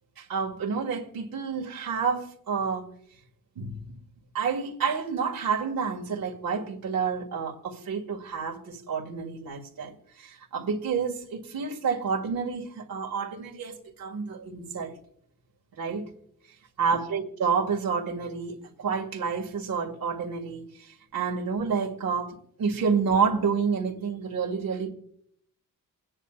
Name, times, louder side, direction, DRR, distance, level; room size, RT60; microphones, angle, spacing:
voice 1, 0.2-2.8 3.6-3.8 4.3-9.9 10.2-14.9 15.8-16.1 16.8-20.7 21.1-24.9, right 5 dB, 85° right, 1.9 m, -29 dB
29.5 x 9.8 x 2.4 m
wide cardioid pair, 120°, 34 cm